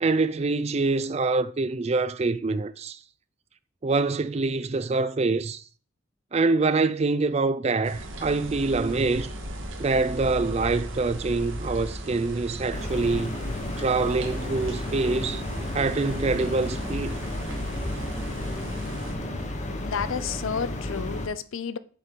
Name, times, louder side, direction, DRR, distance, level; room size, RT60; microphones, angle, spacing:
voice 1, 0.0-3.0 3.8-5.6 6.3-9.3 9.8-13.3 13.8-15.4 15.7-17.2, right 3 dB, 30° right, 0.4 m, -25 dB
sound 1, 7.8-19.1, right 1 dB, 75° right, 1.5 m, -37 dB
sound 2, 12.7-21.3, left 1 dB, 35° left, 1.0 m, -32 dB
voice 2, 19.8-21.8, left 6 dB, 80° left, 0.5 m, -31 dB
7.0 x 4.6 x 5.2 m
head